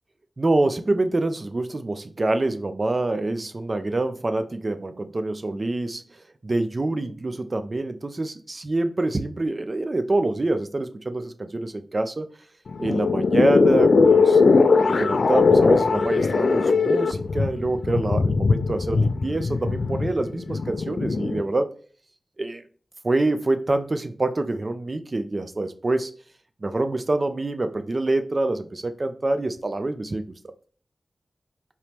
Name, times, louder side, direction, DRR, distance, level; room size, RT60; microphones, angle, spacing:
voice 1, 0.4-6.0 6.4-12.3 12.8-14.4 14.9-21.7 22.4-22.6 23.0-26.1 26.6-30.2, right 2 dB, 40° right, 0.4 m, -26 dB
sound 1, 12.7-21.4, left 4 dB, 75° left, 0.3 m, -20 dB
4.3 x 3.0 x 3.4 m
wide cardioid pair, 100°, 0 cm